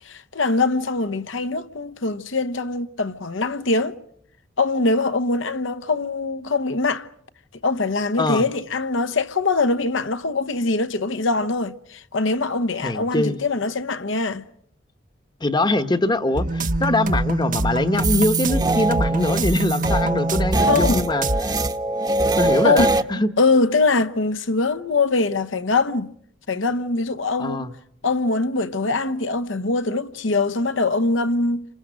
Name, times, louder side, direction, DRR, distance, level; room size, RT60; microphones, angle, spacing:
voice 1, 0.0-4.0 4.6-7.1 7.6-14.4 20.7-21.1 22.6-22.9 23.4-26.1 26.5-27.7 28.0-31.7, left 3 dB, 70° left, 1.0 m, -22 dB
voice 2, 12.8-13.4 15.4-21.6 22.4-23.3 27.4-27.7, left 2 dB, 20° left, 1.0 m, -23 dB
sound 1, 16.3-20.9 21.2-21.4, right 2 dB, 45° right, 1.0 m, -24 dB
sound 2, 17.9-23.0, right 2 dB, 20° right, 1.0 m, -23 dB
29.5 x 26.0 x 6.3 m
head